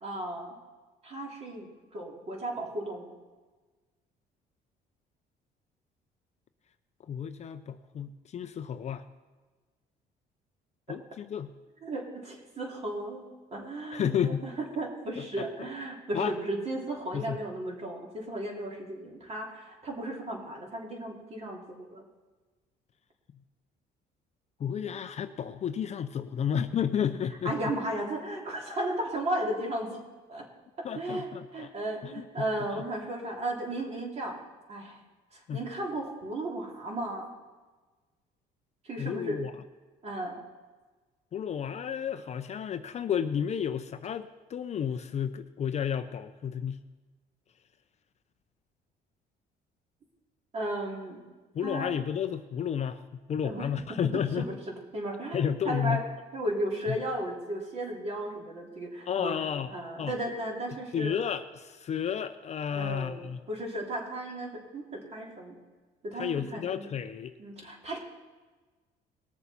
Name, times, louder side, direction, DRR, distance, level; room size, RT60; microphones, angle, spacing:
voice 1, 0.0-0.6 1.0-3.1 11.8-22.0 27.4-30.0 30.3-30.5 30.8-34.4 34.7-35.0 35.3-37.3 38.8-39.4 40.0-40.4 50.5-51.2 51.6-51.9 53.4-56.0 56.3-61.2 62.7-65.6 66.0-66.9 67.4-68.0, right 1 dB, 40° right, -1 dB, 2.9 m, -35 dB
voice 2, 7.0-9.0 10.9-11.5 13.9-14.5 15.2-15.7 16.1-16.3 17.1-17.4 24.6-27.6 30.8-31.7 32.0-32.8 35.5-35.6 39.0-39.5 41.3-46.8 51.5-53.0 53.3-54.5 55.3-56.0 56.9-57.0 59.1-59.7 60.0-60.1 60.9-63.4 66.1-67.3, left 8 dB, 40° left, 10 dB, 0.5 m, -32 dB
20.0 x 7.0 x 4.1 m, 1.3 s
cardioid pair, 110°, 17 cm